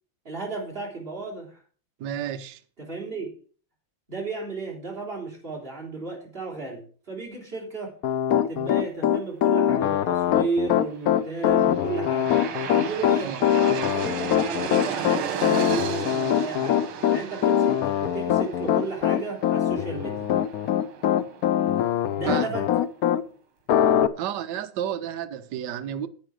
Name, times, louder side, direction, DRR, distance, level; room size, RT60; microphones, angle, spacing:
voice 1, 0.2-1.6 2.8-3.3 4.1-8.0 8.5-12.3 12.7-13.3 13.8-16.8 17.1-20.3 22.1-22.7, right 4 dB, 25° right, 3.8 m, -34 dB
voice 2, 2.0-2.6 13.2-13.4 22.2-22.6 24.2-26.1, right 9 dB, 60° right, 1.3 m, -31 dB
Piano, 8.0-23.2 23.7-24.1, left 10 dB, 80° left, 0.8 m, -22 dB
Aircraft, 11.2-22.2, right 8 dB, 85° right, 2.0 m, -35 dB
10.0 x 8.9 x 4.9 m
omnidirectional pair, 2.3 m